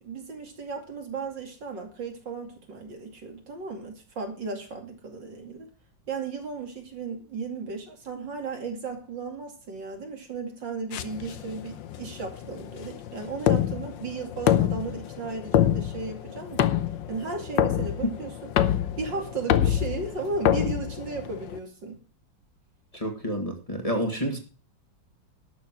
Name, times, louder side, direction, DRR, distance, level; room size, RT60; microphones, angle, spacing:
voice 1, 0.0-5.7 6.1-16.7 17.1-22.0, right 4 dB, 75° right, 3 dB, 3.2 m, -35 dB
sound 1, 10.9-21.6, left 11 dB, 80° left, 1.5 m, -26 dB
voice 2, 22.9-24.4, equal, 20° left, 2 dB, 1.9 m, -28 dB
12.0 x 6.9 x 7.4 m, 0.39 s
omnidirectional pair, 2.0 m